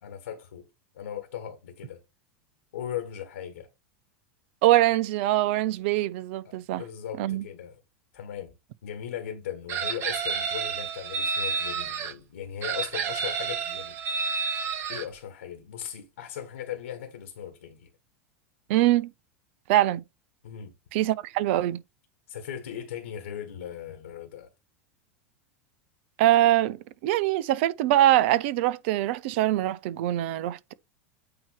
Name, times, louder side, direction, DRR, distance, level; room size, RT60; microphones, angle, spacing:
voice 1, 0.0-0.7 0.9-2.0 2.7-3.7 6.4-7.8 8.1-8.5 8.8-14.4 14.9-17.9 20.4-20.7 22.3-24.5, left 9 dB, 75° left, 1.5 m, -38 dB
voice 2, 4.6-6.8 7.2-7.4 18.7-19.1 19.7-20.0 20.9-21.8 26.2-26.8 27.0-30.7, right 14 dB, 60° right, 0.6 m, -23 dB
Chicken rooster, 9.7-12.1 12.6-15.0, right 6 dB, 35° right, 1.3 m, -30 dB
8.8 x 2.9 x 4.7 m
hypercardioid pair, 90°, 7 cm